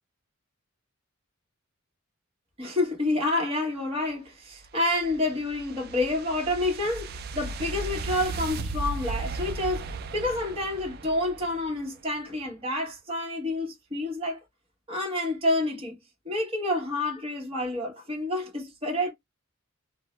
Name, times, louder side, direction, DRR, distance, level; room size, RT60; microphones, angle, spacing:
voice 1, 2.6-9.9 10.1-14.4 14.9-15.9 16.2-19.1, left 1 dB, 25° right, 1.1 m, -28 dB
sound 1, 4.6-11.8, right 3 dB, 45° right, 0.3 m, -36 dB
2.6 x 2.0 x 3.0 m
head